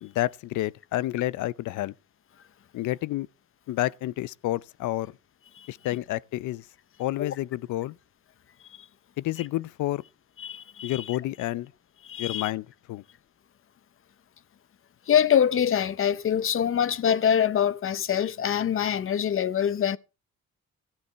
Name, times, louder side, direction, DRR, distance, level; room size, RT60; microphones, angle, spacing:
voice 1, 0.0-1.9 2.7-3.3 3.7-5.1 5.7-6.6 7.0-8.0 9.2-10.0 10.8-11.7 12.2-13.0, left 15 dB, 80° left, 0.6 m, -29 dB
voice 2, 10.4-11.0 12.1-12.5 15.1-20.0, left 9 dB, 45° left, 0.8 m, -24 dB
14.0 x 10.0 x 4.6 m
cardioid pair, 90°, 30 cm